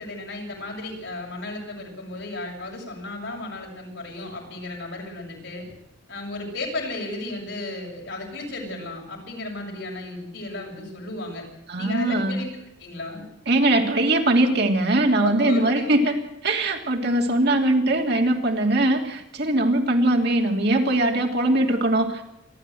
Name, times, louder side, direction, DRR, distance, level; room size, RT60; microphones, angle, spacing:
voice 1, 0.0-5.7 6.1-11.5 11.8-12.5 12.8-13.3 15.2-16.2, left 2 dB, 70° left, 0 dB, 7.3 m, -34 dB
voice 2, 11.7-12.4 13.5-22.2, right 1 dB, 60° right, 2 dB, 3.0 m, -21 dB
28.0 x 12.0 x 7.8 m, 0.85 s
head